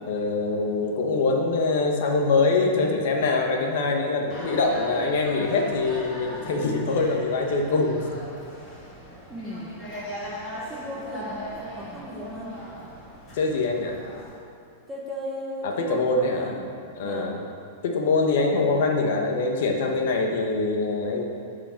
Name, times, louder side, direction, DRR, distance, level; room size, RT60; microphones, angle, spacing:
voice 1, 0.1-8.2 13.3-13.9 15.6-16.6 17.0-17.4 17.8-21.2, left 3 dB, 55° left, 2 dB, 1.1 m, -24 dB
sound 1, 4.3-14.3, equal, 20° left, 2.0 m, -39 dB
voice 2, 9.3-9.7 10.7-12.6 14.9-16.7 17.0-17.3 18.0-18.6, equal, 10° right, -3 dB, 0.9 m, -37 dB
9.0 x 5.0 x 5.8 m, 2.5 s
supercardioid pair, 175°, 0 cm